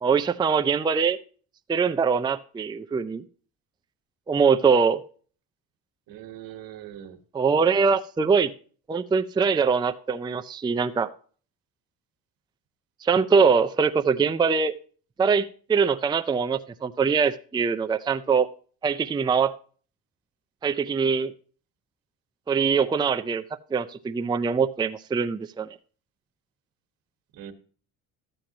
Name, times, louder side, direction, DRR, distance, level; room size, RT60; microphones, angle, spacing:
voice 1, 0.0-1.2 1.7-3.2 4.3-5.0 7.3-8.5 8.9-11.1 13.0-14.7 15.2-18.5 18.8-19.5 20.6-21.3 22.5-23.4 23.7-25.7, right 5 dB, 10° right, 8 dB, 0.5 m, -23 dB
voice 2, 6.1-7.2 27.3-27.5, right 11 dB, 70° right, 8 dB, 1.4 m, -41 dB
12.5 x 7.7 x 2.9 m, 0.42 s
cardioid pair, 95°, 36 cm